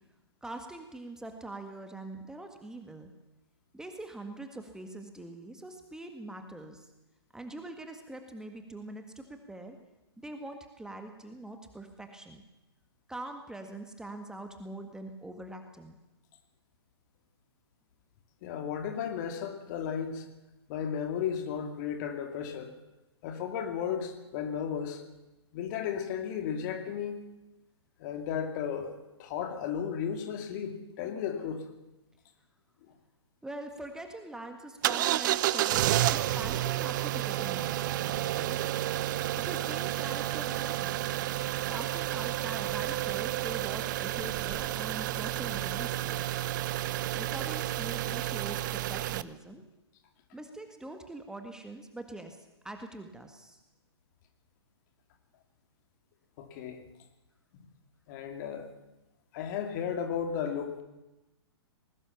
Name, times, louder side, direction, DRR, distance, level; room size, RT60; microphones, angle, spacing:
voice 1, 0.4-3.1 3.7-6.9 7.3-9.8 10.2-12.4 13.1-15.9 33.4-38.8 39.3-41.1 41.7-46.4 47.1-49.6 50.3-53.6, right 2 dB, 5° right, 5 dB, 1.7 m, -43 dB
voice 2, 18.4-20.3 20.7-22.7 23.2-25.0 25.5-27.1 28.0-31.7 56.4-56.8 57.5-57.7 58.1-58.7 59.3-60.8, left 8 dB, 40° left, 6 dB, 2.8 m, -34 dB
sound 1, 34.8-49.2, right 14 dB, 45° right, 0.8 m, -31 dB
20.5 x 18.0 x 7.2 m, 0.99 s
figure-of-eight pair, 115°, 14 cm